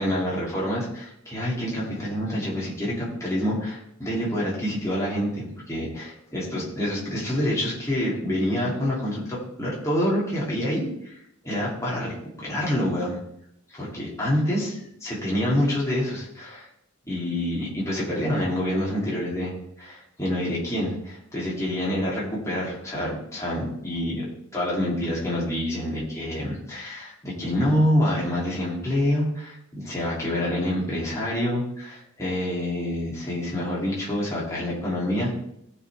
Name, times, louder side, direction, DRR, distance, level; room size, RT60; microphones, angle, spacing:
voice 1, 0.0-11.2 11.4-13.2 13.7-16.7 17.1-24.3 24.5-35.4, left 1 dB, 15° left, -6 dB, 2.8 m, -27 dB
15.5 x 5.6 x 3.5 m, 0.76 s
head